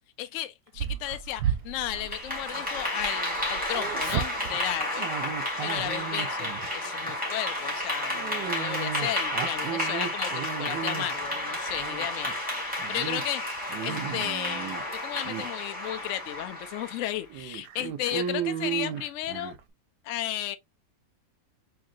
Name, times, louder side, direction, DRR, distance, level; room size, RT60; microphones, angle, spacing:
voice 1, 0.2-5.1 5.6-12.3 12.9-13.4 13.8-19.6 20.0-20.6, left 13 dB, 70° left, 0.7 m, -34 dB
Dog, 0.8-3.1 3.3-6.7 7.1-7.4 8.1-11.3 11.7-12.4 12.8-13.2 13.6-14.8 15.2-15.5 16.1-16.2 16.6-16.7 17.3-19.6, right 9 dB, 80° right, 1.2 m, -34 dB
Clapping / Applause, 1.9-17.2, left 1 dB, 5° right, 1.9 m, -32 dB
3.8 x 3.1 x 2.6 m
omnidirectional pair, 1.8 m